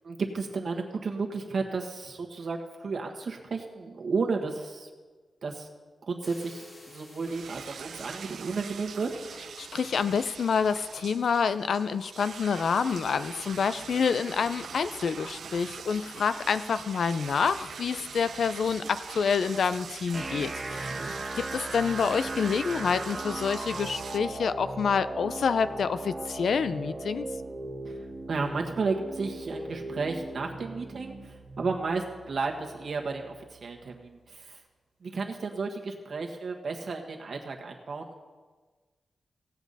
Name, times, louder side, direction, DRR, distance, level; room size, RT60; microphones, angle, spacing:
voice 1, 0.0-4.9 5.4-5.7 6.1-9.2 20.9-21.1 27.8-28.0 28.3-34.6 35.0-38.1, right 4 dB, 60° right, 2 dB, 1.5 m, -33 dB
sound 1, 6.2-13.0, left 2 dB, 45° left, 3.7 m, -56 dB
sound 2, 7.2-24.2, right 6 dB, 80° right, 0.4 m, -43 dB
voice 2, 9.6-27.3, left 6 dB, 75° left, 13 dB, 0.4 m, -28 dB
sound 3, 20.1-34.1, right 2 dB, 25° right, 1.2 m, -38 dB
17.5 x 8.2 x 4.1 m, 1.4 s
wide cardioid pair, 130°, 0 cm